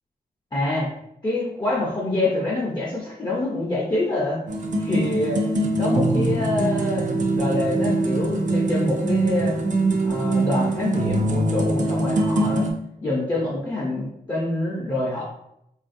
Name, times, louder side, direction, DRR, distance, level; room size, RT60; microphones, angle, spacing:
voice 1, 0.5-0.9 1.2-4.4 4.8-5.4 5.8-9.6 10.0-12.7 13.0-15.2, left 2 dB, 25° left, -6 dB, 0.6 m, -26 dB
sound 1, 4.5-12.7, right 2 dB, 50° right, 0.4 m, -23 dB
3.5 x 2.4 x 2.6 m, 0.78 s
wide cardioid pair, 165°, 17 cm